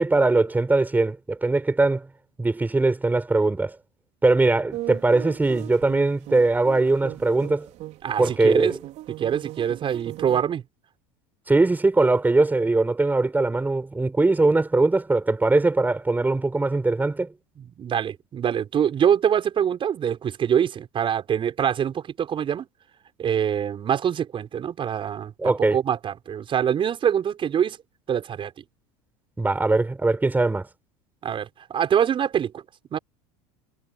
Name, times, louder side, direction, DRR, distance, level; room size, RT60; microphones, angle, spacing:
voice 1, 0.0-2.1 2.4-3.8 4.2-7.7 8.2-8.7 11.5-17.3 25.4-25.8 29.4-30.7, right 3 dB, 15° right, 4.3 m, -21 dB
sound 1, 4.7-10.4, right 15 dB, 55° right, 5.1 m, -38 dB
voice 2, 8.0-8.7 9.2-10.6 17.6-22.7 23.2-27.8 28.1-28.5 31.2-32.6 32.9-33.0, right 8 dB, 40° right, 5.4 m, -24 dB
supercardioid pair, 95°, 14 cm